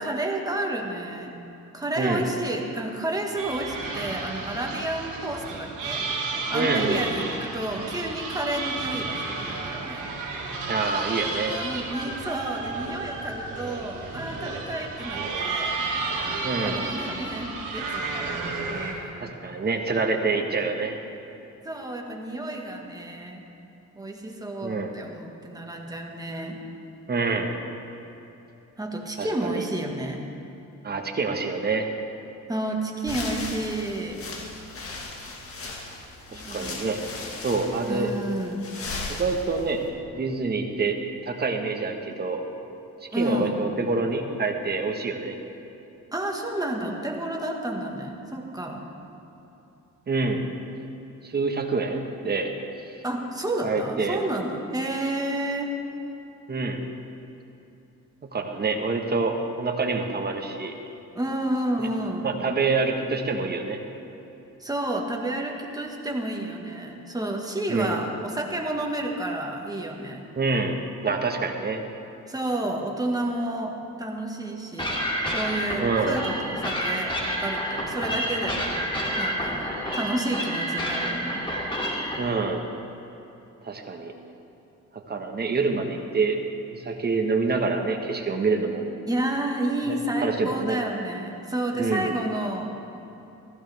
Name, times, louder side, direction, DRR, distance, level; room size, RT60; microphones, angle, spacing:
voice 1, 0.0-1.4 1.7-10.1 11.4-15.8 16.6-19.3 21.6-23.4 23.9-26.6 28.8-30.3 32.5-34.2 36.3-36.8 37.9-38.6 43.1-43.6 46.1-48.8 53.0-55.7 61.1-62.3 64.6-70.3 72.3-75.0 75.3-78.8 79.2-81.5 81.7-82.0 89.0-92.7, right 1 dB, 10° right, 1 dB, 1.7 m, -30 dB
sound 1, 3.4-18.9, right 3 dB, 80° right, 2.0 m, -32 dB
voice 2, 6.5-7.0 10.7-11.6 16.4-16.8 19.2-21.0 24.6-24.9 27.1-27.5 29.2-29.6 30.8-31.9 36.3-37.0 37.4-38.1 39.1-39.8 40.1-41.0 41.2-42.4 43.0-45.4 50.1-50.4 51.2-52.5 53.6-54.2 56.5-56.8 58.2-60.7 62.2-63.8 67.7-68.0 70.4-70.8 71.0-71.8 75.8-76.2 82.2-82.6 83.6-84.1 84.9-86.4 86.7-88.8 89.9-90.0 90.2-90.8 91.8-92.1, right 4 dB, 35° right, 3 dB, 1.4 m, -26 dB
sound 2, 33.0-39.9, left 3 dB, 45° left, 1.8 m, -37 dB
sound 3, 74.8-82.2, equal, 15° left, 2.7 m, -29 dB
15.0 x 14.5 x 3.5 m, 3.0 s
cardioid pair, 90°, 30 cm